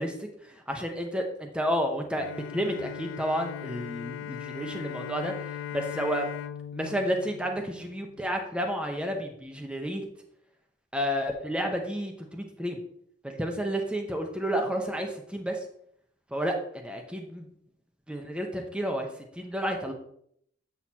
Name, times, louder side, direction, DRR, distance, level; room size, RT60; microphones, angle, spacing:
voice 1, 0.0-6.3 6.7-10.0 10.9-12.8 13.2-15.6 16.3-17.5 18.1-19.9, equal, 5° right, 3 dB, 0.8 m, -31 dB
Bowed string instrument, 2.2-8.4, left 9 dB, 75° left, 0.3 m, -39 dB
7.6 x 6.4 x 2.8 m, 0.69 s
head